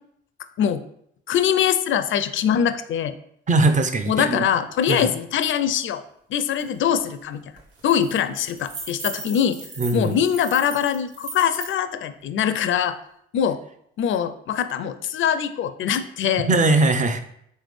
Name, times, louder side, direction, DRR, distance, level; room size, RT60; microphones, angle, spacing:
voice 1, 1.3-3.1 4.1-6.0 6.3-7.5 7.8-9.6 9.9-13.0 13.3-13.6 14.0-16.5, left 9 dB, 45° left, 11 dB, 0.4 m, -23 dB
voice 2, 3.5-4.5 4.9-5.1 9.8-10.2 16.4-17.2, right 2 dB, 25° right, 7 dB, 0.5 m, -20 dB
sound 1, 6.6-6.7 7.0-7.2 7.6-11.7, right 3 dB, 50° right, 1.0 m, -37 dB
3.5 x 3.3 x 3.2 m, 0.70 s
hypercardioid pair, 50°, 29 cm